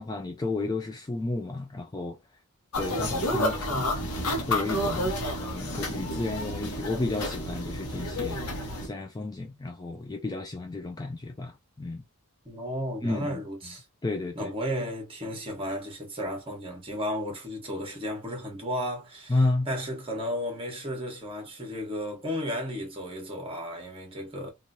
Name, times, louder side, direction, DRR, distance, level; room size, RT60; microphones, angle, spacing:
voice 1, 0.0-2.2 2.8-4.0 4.5-5.1 5.4-8.4 8.8-12.0 13.0-13.4 14.0-14.5 19.3-19.7, left 2 dB, 15° left, 0.3 m, -32 dB
sound 1, 2.7-8.9, left 1 dB, 75° left, 1.0 m, -30 dB
voice 2, 5.0-5.4 12.4-13.8 14.3-24.5, equal, 25° right, 1.2 m, -34 dB
2.9 x 2.5 x 2.6 m
head